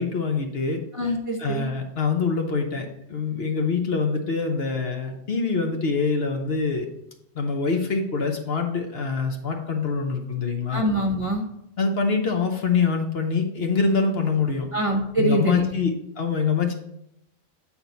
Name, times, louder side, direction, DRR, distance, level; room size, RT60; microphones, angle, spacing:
voice 1, 0.0-1.1 1.4-6.9 7.4-10.8 11.8-14.7 15.2-16.7, left 5 dB, 50° left, 4 dB, 1.0 m, -25 dB
voice 2, 0.9-1.7 10.7-11.5 14.7-15.8, right 1 dB, 30° right, 1 dB, 0.8 m, -24 dB
8.5 x 4.4 x 4.0 m, 0.79 s
omnidirectional pair, 1.4 m